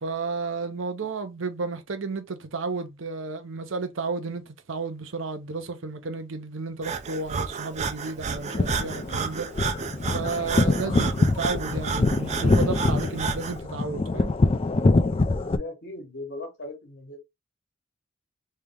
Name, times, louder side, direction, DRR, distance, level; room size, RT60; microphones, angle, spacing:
voice 1, 0.0-4.4 4.7-9.5 10.1-14.3, right 4 dB, 75° right, 0.7 m, -32 dB
Breathing, 6.8-13.6, right 5 dB, 35° right, 0.5 m, -32 dB
sound 1, 8.3-15.6, left 2 dB, 30° left, 0.4 m, -24 dB
voice 2, 15.4-17.2, left 2 dB, 60° left, 1.4 m, -38 dB
3.3 x 2.8 x 3.6 m
head